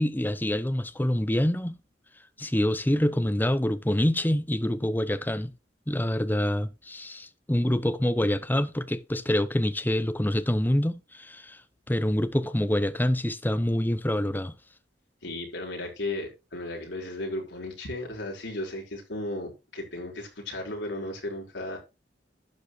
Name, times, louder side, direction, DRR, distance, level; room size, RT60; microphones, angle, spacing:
voice 1, 0.0-1.8 2.4-5.5 5.9-11.6 11.9-14.5, left 1 dB, 10° left, 0.8 m, -26 dB
voice 2, 15.2-21.8, left 1 dB, 75° left, 4.6 m, -35 dB
12.0 x 9.0 x 3.2 m
head